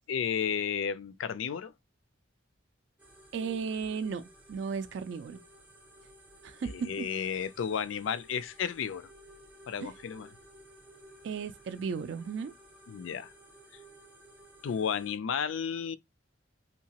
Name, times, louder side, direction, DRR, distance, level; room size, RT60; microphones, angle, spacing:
voice 1, 0.1-1.7 6.6-9.1 9.7-10.3 12.9-13.3 14.6-16.0, left 7 dB, 75° left, 0.4 m, -33 dB
sound 1, 3.0-15.2, right 1 dB, 10° right, 0.6 m, -56 dB
voice 2, 3.3-4.2 4.5-5.4 6.4-7.1 9.8-9.9 11.2-12.5, right 5 dB, 65° right, 0.3 m, -35 dB
2.8 x 2.2 x 2.8 m
head